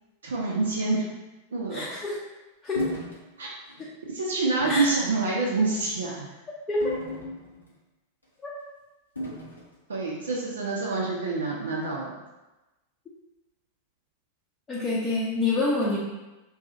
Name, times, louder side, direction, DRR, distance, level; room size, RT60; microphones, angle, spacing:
voice 1, 0.2-1.1 1.5-1.8 3.4-3.5 4.1-6.3 9.9-12.2, right 3 dB, 70° right, -3 dB, 0.5 m, -27 dB
voice 2, 1.7-2.2 2.6-2.9 4.7-5.0 6.7-6.9 14.7-16.0, left 2 dB, 20° left, -8 dB, 0.6 m, -26 dB
sound 1, 2.7-3.2 3.7-3.8 4.6-5.0 5.7-6.0 6.8-7.7 9.2-9.7, left 1 dB, 80° left, 0.7 m, -35 dB
2.7 x 2.3 x 3.8 m, 1.1 s
figure-of-eight pair, 90°, 0 cm